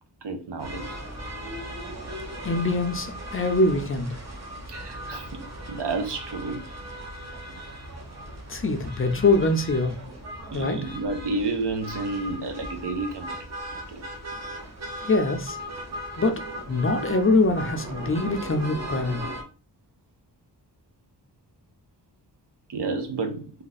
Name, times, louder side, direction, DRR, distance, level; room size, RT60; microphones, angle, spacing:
voice 1, 0.2-1.0 4.7-6.6 10.5-13.5 13.9-14.1 22.7-23.5, right 3 dB, 80° right, 0.8 m, -31 dB
sound 1, 0.6-19.4, right 1 dB, 40° right, 0.7 m, -37 dB
voice 2, 2.4-4.1 8.5-10.0 10.5-10.8 15.0-15.6 16.2-16.4 16.7-19.2, left 2 dB, 35° left, 0.4 m, -23 dB
2.7 x 2.4 x 4.0 m
wide cardioid pair, 125°, 41 cm